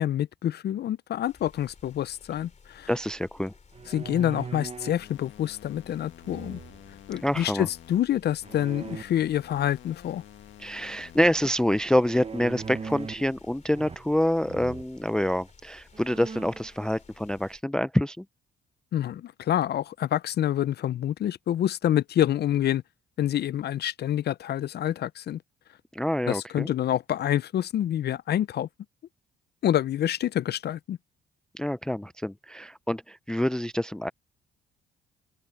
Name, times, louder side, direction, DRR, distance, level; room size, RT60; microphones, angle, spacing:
voice 1, 0.0-2.9 3.9-6.6 7.1-10.2 18.9-22.8 23.2-25.4 26.3-28.7 29.6-31.0, left 11 dB, 55° left, 0.5 m, -27 dB
sound 1, 1.3-17.6, left 5 dB, 35° left, 3.2 m, -56 dB
voice 2, 2.9-3.5 7.2-7.7 10.6-18.2 25.9-26.7 31.5-34.1, left 1 dB, 5° left, 0.4 m, -26 dB
sound 2, 3.7-5.1 6.2-6.9 8.4-9.0 12.0-13.3 13.7-14.2 14.5-14.9 15.5-15.6 15.9-16.7, right 5 dB, 30° right, 1.0 m, -39 dB
sound 3, 5.0-8.0 8.4-11.4, left 11 dB, 70° left, 1.4 m, -50 dB
open air
cardioid pair, 90°, 20 cm